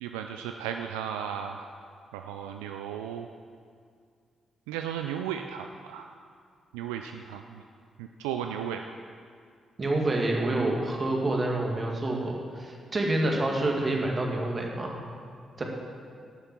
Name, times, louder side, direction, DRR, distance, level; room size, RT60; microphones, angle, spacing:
voice 1, 0.0-1.7 2.1-3.3 4.7-6.1 6.7-7.6 8.0-8.8, right 9 dB, 85° right, 5 dB, 0.3 m, -35 dB
voice 2, 9.8-15.0 15.6-15.7, right 2 dB, 40° right, 0 dB, 2.0 m, -27 dB
10.5 x 6.5 x 6.0 m, 2.2 s
hypercardioid pair, 40°, 0 cm